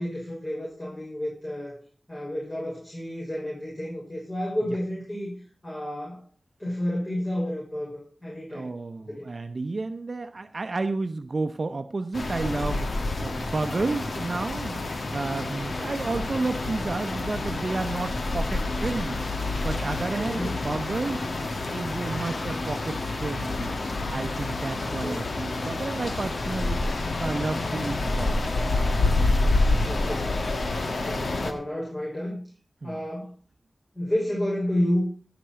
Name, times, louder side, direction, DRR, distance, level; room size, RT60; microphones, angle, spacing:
voice 1, 0.0-1.8 2.1-5.3 5.6-6.2 6.6-8.7 9.1-9.3 20.2-20.5 21.6-21.7 24.8-25.2 29.9-30.4 31.0-32.4 32.8-33.3 33.9-35.0, left 1 dB, 35° left, -5 dB, 6.0 m, -30 dB
voice 2, 8.5-19.2 19.6-21.2 21.7-23.7 24.1-26.8 27.2-28.4 32.8-32.9, right 3 dB, 65° right, 8 dB, 0.7 m, -31 dB
sound 1, 12.1-31.5, left 2 dB, 75° left, 1.5 m, -28 dB
16.5 x 6.0 x 5.7 m, 0.40 s
wide cardioid pair, 55°, 0 cm